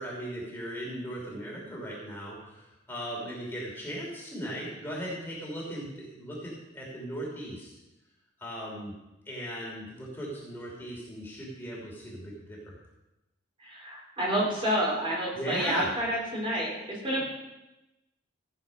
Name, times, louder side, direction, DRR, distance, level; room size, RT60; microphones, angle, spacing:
voice 1, 0.0-7.7 8.4-8.9 9.3-12.6 15.3-15.9, equal, 10° left, -4 dB, 3.2 m, -37 dB
voice 2, 13.6-17.2, equal, 25° right, -4 dB, 3.9 m, -29 dB
15.5 x 8.8 x 5.4 m, 0.98 s
head